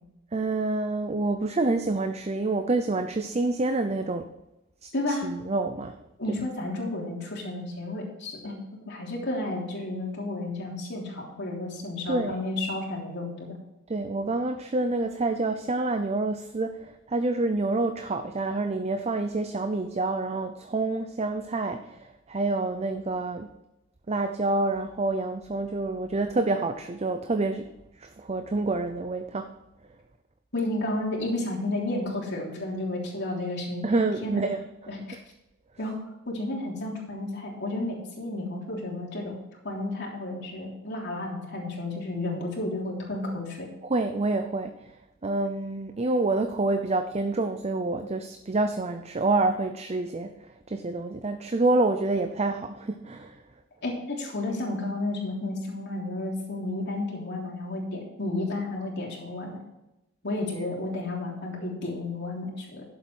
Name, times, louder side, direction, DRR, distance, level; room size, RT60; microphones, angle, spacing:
voice 1, 0.3-4.3 4.8-6.0 6.3-6.4 12.1-12.4 13.9-23.5 24.1-27.7 28.0-29.5 33.8-34.7 43.8-44.8 45.2-53.4, right 2 dB, 30° right, 7 dB, 0.6 m, -27 dB
voice 2, 4.9-5.3 6.2-8.6 8.8-13.6 30.5-33.8 34.2-34.4 34.9-35.0 35.8-36.0 36.3-39.4 39.6-43.7 53.8-59.6 60.2-62.8, left 2 dB, 60° left, -2 dB, 3.3 m, -32 dB
11.0 x 7.6 x 4.7 m, 0.94 s
head